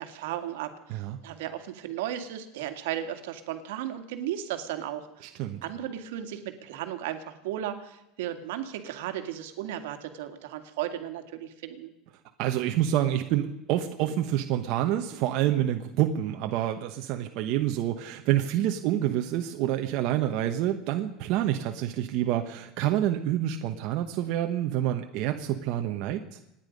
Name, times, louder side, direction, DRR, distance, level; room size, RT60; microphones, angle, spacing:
voice 1, 0.0-5.3 5.6-11.9, right 11 dB, 85° right, 7 dB, 2.0 m, -35 dB
voice 2, 12.4-26.4, right 12 dB, 55° right, 4 dB, 1.1 m, -27 dB
26.5 x 10.5 x 5.3 m, 0.89 s
supercardioid pair, 150°, 0 cm